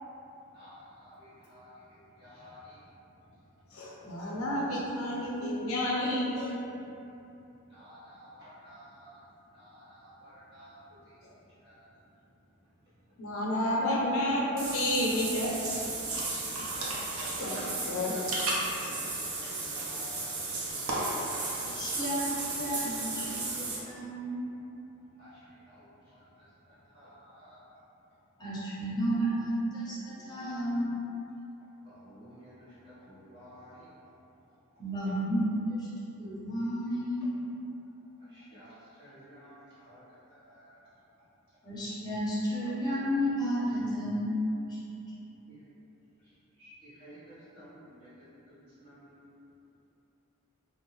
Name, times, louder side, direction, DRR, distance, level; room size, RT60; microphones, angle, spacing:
voice 1, 0.5-1.7 2.2-2.8 7.7-9.2 9.5-10.8 11.6-11.9 16.6-16.8 17.1-18.9 19.2-20.3 25.2-25.8 26.1-26.4 26.9-27.6 29.2-29.3 31.8-33.9 38.3-40.9 46.6-48.1 48.8-49.2, equal, 50° right, -13 dB, 1.1 m, -52 dB
voice 2, 3.7-6.6 13.2-15.5 17.4-18.2, left 1 dB, 75° left, -4 dB, 0.5 m, -30 dB
Water / Bathtub (filling or washing), 14.6-23.8, right 2 dB, 80° right, 0.5 m, -34 dB
voice 3, 21.6-24.4 28.4-30.9 34.8-35.9 36.2-37.3 41.6-44.4 44.6-44.8, equal, 20° left, -10 dB, 0.7 m, -32 dB
2.6 x 2.0 x 3.0 m, 2.8 s
head